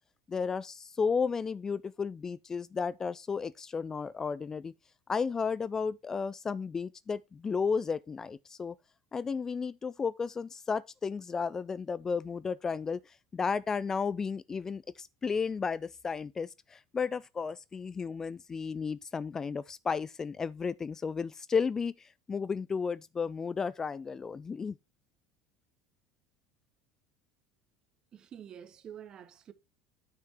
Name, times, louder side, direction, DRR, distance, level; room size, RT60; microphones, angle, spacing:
voice 1, 0.3-4.7 5.1-8.8 9.1-24.8, left 5 dB, 25° left, 0.4 m, -33 dB
voice 2, 28.1-29.5, right 9 dB, 35° right, 1.1 m, -48 dB
9.7 x 6.4 x 2.9 m
figure-of-eight pair, 70°, 2 cm